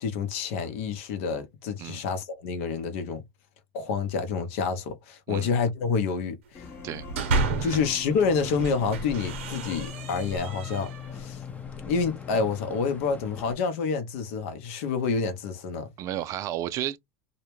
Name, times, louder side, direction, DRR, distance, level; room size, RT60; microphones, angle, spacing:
voice 1, 0.0-3.2 3.7-6.7 7.6-11.4 11.9-15.9, left 5 dB, 70° left, 0.7 m, -28 dB
sound 1, 6.5-13.6, left 9 dB, 35° left, 0.9 m, -42 dB
sound 2, 6.8-7.9 8.4-11.2, right 3 dB, 80° right, 0.7 m, -31 dB
sound 3, 8.1-13.6, left 2 dB, 20° left, 0.5 m, -45 dB
voice 2, 16.0-17.0, right 12 dB, 50° right, 0.4 m, -32 dB
2.1 x 2.1 x 3.0 m
hypercardioid pair, 90°, 7 cm